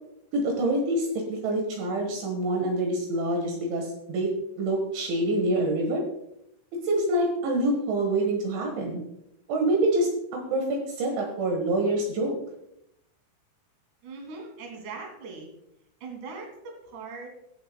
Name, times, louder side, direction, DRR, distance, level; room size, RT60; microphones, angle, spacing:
voice 1, 0.3-4.3 4.6-6.0 6.8-9.0 9.5-12.3, right 1 dB, 70° right, 1 dB, 3.7 m, -26 dB
voice 2, 14.0-15.5 16.0-17.6, right 4 dB, 45° right, 0 dB, 3.5 m, -40 dB
20.0 x 7.9 x 2.3 m, 0.80 s
omnidirectional pair, 5.7 m